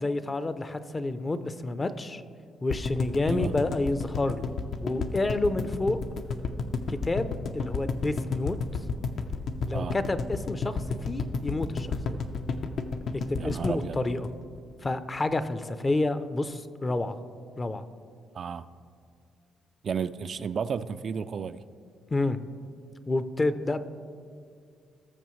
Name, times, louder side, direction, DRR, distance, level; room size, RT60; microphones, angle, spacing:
voice 1, 0.0-2.2 2.6-6.0 6.9-8.6 9.6-12.2 13.1-14.3 14.8-17.2 17.6-17.8 22.1-22.4 23.1-23.8, left 2 dB, 25° left, 0.6 m, -29 dB
sound 1, 2.7-14.9 15.2-15.3 15.4-15.5, left 4 dB, 65° left, 0.7 m, -31 dB
voice 2, 13.4-14.0 18.3-18.7 19.8-21.6, right 6 dB, 50° right, 0.3 m, -32 dB
19.5 x 6.8 x 3.2 m
cardioid pair, 90°, 0 cm